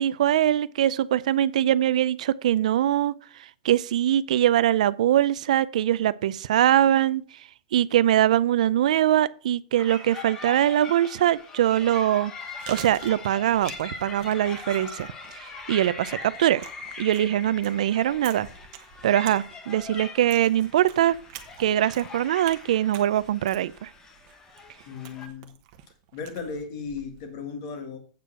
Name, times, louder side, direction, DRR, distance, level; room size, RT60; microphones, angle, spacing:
voice 1, 0.0-3.1 3.6-7.2 7.7-12.3 12.7-16.6 17.0-18.5 19.0-21.2 21.6-23.9, right 12 dB, 65° right, 0.4 m, -22 dB
sound 1, 9.8-25.3, left 4 dB, 15° left, 0.9 m, -41 dB
Chewing mastication, 12.3-27.3, right 11 dB, 35° right, 0.9 m, -47 dB
voice 2, 24.8-25.5 26.1-28.0, left 5 dB, 40° left, 1.7 m, -36 dB
8.2 x 4.6 x 6.2 m
supercardioid pair, 180°, 4 cm